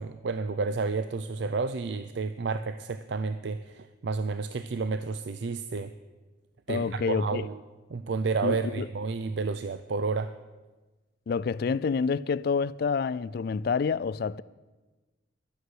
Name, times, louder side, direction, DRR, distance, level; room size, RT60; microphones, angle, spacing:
voice 1, 0.0-5.9 6.7-7.6 7.9-10.3, right 4 dB, 60° right, 0.4 m, -31 dB
voice 2, 6.7-7.4 8.4-8.9 11.3-14.4, left 5 dB, 55° left, 0.3 m, -28 dB
11.5 x 8.1 x 7.9 m
head